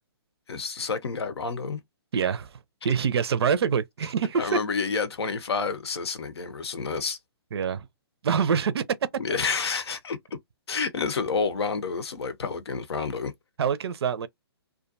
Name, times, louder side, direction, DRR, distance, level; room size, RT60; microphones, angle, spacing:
voice 1, 0.5-1.8 4.4-7.2 9.2-10.2 10.7-13.3, left 5 dB, 70° left, 0.7 m, -29 dB
voice 2, 2.1-2.5 2.8-4.6 7.5-7.9 8.2-9.0 13.6-14.3, right 6 dB, 70° right, 0.5 m, -25 dB
2.4 x 2.2 x 2.6 m
hypercardioid pair, 135°, 14 cm